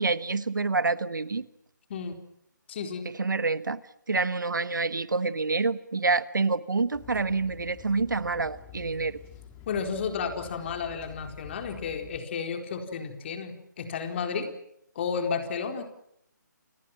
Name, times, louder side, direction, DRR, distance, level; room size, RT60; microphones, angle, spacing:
voice 1, 0.0-1.5 3.0-3.8 4.1-9.2, right 3 dB, 75° right, 15 dB, 1.4 m, -27 dB
voice 2, 2.7-3.1 9.7-14.5 14.9-15.8, left 6 dB, 35° left, 5 dB, 4.3 m, -32 dB
sound 1, 6.9-12.2, left 9 dB, 15° left, 3.5 m, -49 dB
29.5 x 26.5 x 6.1 m, 0.74 s
figure-of-eight pair, 150°, 10 cm